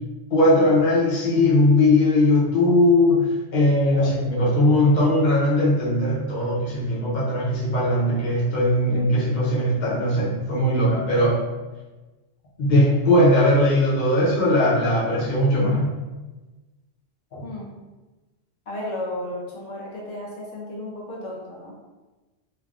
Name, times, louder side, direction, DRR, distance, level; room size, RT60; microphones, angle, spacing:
voice 1, 0.3-11.4 12.6-15.9 17.3-17.5, left 1 dB, 45° left, -7 dB, 0.8 m, -19 dB
voice 2, 18.7-21.7, left 1 dB, 75° left, -4 dB, 0.9 m, -33 dB
3.3 x 2.2 x 2.4 m, 1.2 s
omnidirectional pair, 1.3 m